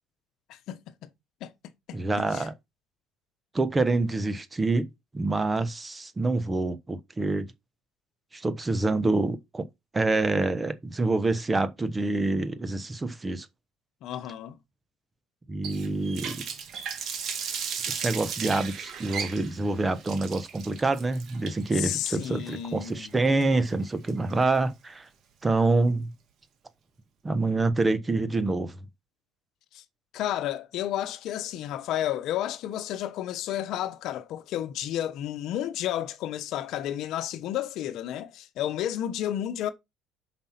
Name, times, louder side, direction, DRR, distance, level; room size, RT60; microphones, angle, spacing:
voice 1, 0.5-1.1 1.4-1.5 1.9-2.0 2.3-2.5 14.0-14.6 21.7-23.1 29.7-29.8 30.1-39.7, left 11 dB, 60° left, 1.0 m, -32 dB
voice 2, 1.9-2.5 3.5-4.9 5.1-7.5 8.3-9.6 9.9-13.5 15.5-16.4 17.9-25.1 25.4-26.1 27.2-28.8, right 2 dB, 15° right, 1.0 m, -26 dB
Water tap faucet, 15.6-24.6, right 6 dB, 50° right, 1.9 m, -36 dB
6.0 x 5.3 x 5.8 m
cardioid pair, 110°, 0 cm